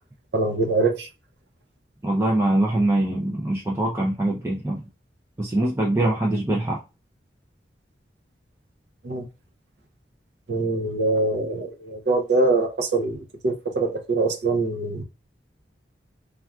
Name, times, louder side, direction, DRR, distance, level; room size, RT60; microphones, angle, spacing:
voice 1, 0.3-1.1 9.0-9.3 10.5-15.0, right 3 dB, 75° right, 0.6 m, -23 dB
voice 2, 2.0-4.8 5.4-6.8, right 1 dB, 15° right, 0.4 m, -23 dB
3.4 x 2.4 x 2.2 m
head